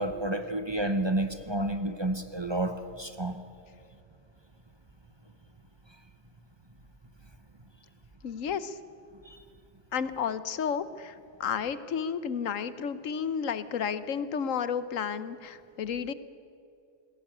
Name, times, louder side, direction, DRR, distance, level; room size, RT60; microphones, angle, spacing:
voice 1, 0.0-3.4 9.3-9.4, right 1 dB, 25° right, 9 dB, 0.9 m, -30 dB
voice 2, 8.2-8.7 9.9-11.1 11.4-16.1, left 7 dB, 85° left, 14 dB, 1.3 m, -32 dB
19.5 x 16.5 x 9.1 m, 2.5 s
omnidirectional pair, 1.3 m